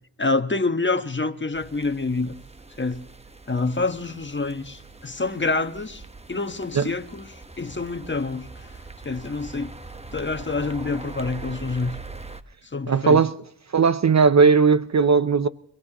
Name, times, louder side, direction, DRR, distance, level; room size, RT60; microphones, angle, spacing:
voice 1, 0.2-2.3 2.8-3.0 3.5-6.0 6.3-8.7 9.0-9.7 10.1-12.0 12.6-13.2, left 3 dB, 25° left, 1.4 m, -27 dB
sound 1, 1.5-12.4, right 3 dB, 15° right, 1.2 m, -42 dB
voice 2, 12.9-13.3 13.7-15.5, right 5 dB, 35° right, 0.7 m, -17 dB
30.0 x 16.0 x 3.0 m
supercardioid pair, 50°, 46 cm